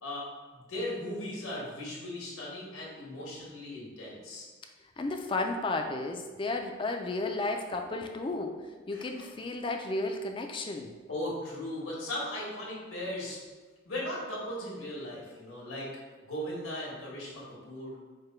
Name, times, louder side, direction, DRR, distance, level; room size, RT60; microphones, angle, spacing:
voice 1, 0.0-4.5 8.9-9.3 11.1-13.4 13.8-15.9 16.2-18.0, left 1 dB, 90° left, -5 dB, 1.4 m, -38 dB
voice 2, 5.0-11.0, left 2 dB, 25° left, 4 dB, 0.3 m, -33 dB
4.8 x 2.2 x 4.3 m, 1.3 s
head